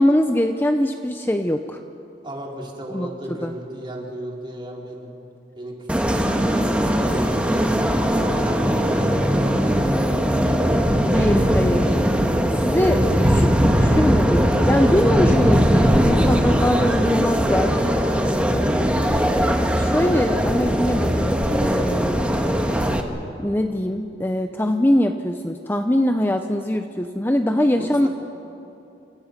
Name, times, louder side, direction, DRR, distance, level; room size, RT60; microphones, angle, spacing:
voice 1, 0.0-1.8 2.9-3.5 11.1-11.9 12.6-13.5 13.8-17.7 19.8-22.4 23.4-28.1, left 1 dB, 10° left, 6 dB, 0.8 m, -22 dB
voice 2, 2.2-5.1 5.6-5.7 7.0-7.7 8.1-11.4 16.7-19.4 27.8-28.1, right 1 dB, 30° right, -2 dB, 4.1 m, -35 dB
sound 1, 5.9-23.0, equal, 5° right, 1.6 m, -19 dB
29.0 x 27.0 x 5.3 m, 2.8 s
head